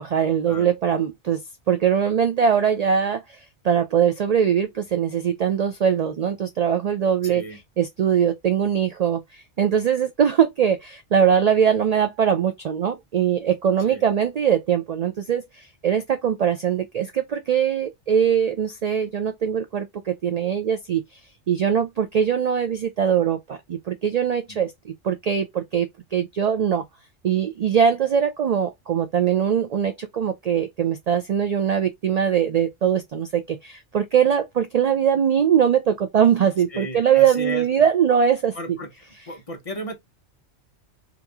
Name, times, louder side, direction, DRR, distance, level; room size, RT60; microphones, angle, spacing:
voice 1, 0.0-1.4 1.7-3.4 3.6-7.4 7.8-21.2 21.5-26.8 27.2-38.6, right 8 dB, 75° right, 0.3 m, -21 dB
voice 2, 7.2-7.6 13.8-14.0 24.5-24.6 36.7-37.7 38.5-38.9 39.3-40.0, equal, 35° left, 0.8 m, -34 dB
2.9 x 2.5 x 3.4 m
omnidirectional pair, 1.2 m